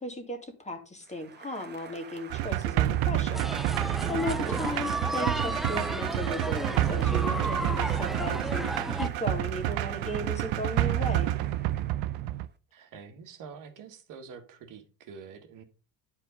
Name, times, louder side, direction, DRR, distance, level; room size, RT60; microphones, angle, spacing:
voice 1, 0.0-3.5 3.8-11.3, left 1 dB, 20° left, 5 dB, 2.1 m, -36 dB
Applause, 1.0-12.5, right 6 dB, 25° right, 1.2 m, -48 dB
sound 1, 2.3-12.5, right 14 dB, 75° right, 0.7 m, -29 dB
sound 2, 3.3-9.1, right 1 dB, ahead, 0.4 m, -33 dB
voice 2, 12.7-15.6, right 6 dB, 55° right, 6 dB, 1.8 m, -46 dB
10.5 x 4.9 x 5.2 m, 0.35 s
cardioid pair, 125°, 37 cm